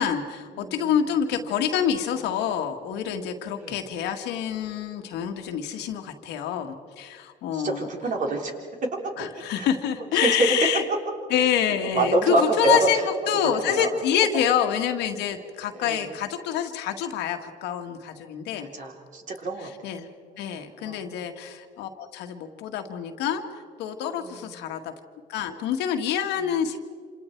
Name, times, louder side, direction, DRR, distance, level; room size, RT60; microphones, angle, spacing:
voice 1, 0.0-7.9 9.2-10.8 11.3-18.7 19.6-20.1 20.4-23.4 23.8-24.9 25.3-26.8, left 9 dB, 85° left, 5 dB, 1.8 m, -27 dB
voice 2, 0.6-1.0 3.6-3.8 7.5-8.5 9.0-9.7 10.2-10.4 11.9-12.8 13.6-13.9 15.7-16.1 18.7-19.7 20.5-21.1 24.2-24.5, right 2 dB, 50° right, 2 dB, 3.8 m, -27 dB
27.5 x 27.5 x 4.6 m, 2.1 s
cardioid pair, 110°, 17 cm